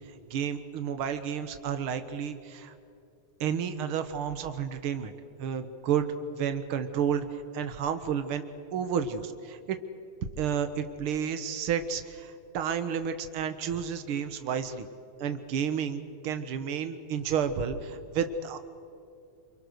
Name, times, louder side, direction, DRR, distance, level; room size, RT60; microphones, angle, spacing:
voice 1, 0.3-2.7 3.4-5.1 5.4-8.4 8.7-9.8 10.4-14.9 15.2-18.6, right 7 dB, 55° right, 9 dB, 1.7 m, -31 dB
28.0 x 23.5 x 6.5 m, 2.6 s
omnidirectional pair, 3.6 m